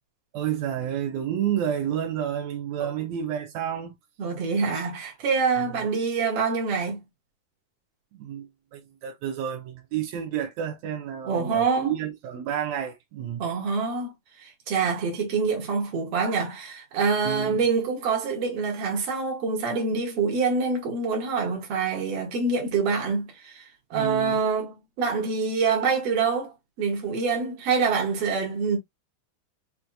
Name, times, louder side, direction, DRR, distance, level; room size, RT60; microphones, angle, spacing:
voice 1, 0.3-3.9 5.6-5.8 8.2-13.4 17.2-17.6 23.9-24.4, right 9 dB, 85° right, 1.5 m, -30 dB
voice 2, 4.2-7.0 11.2-12.0 13.4-14.1 14.4-23.6 23.9-28.8, right 5 dB, 55° right, 1.9 m, -26 dB
5.9 x 2.7 x 2.3 m
omnidirectional pair, 4.1 m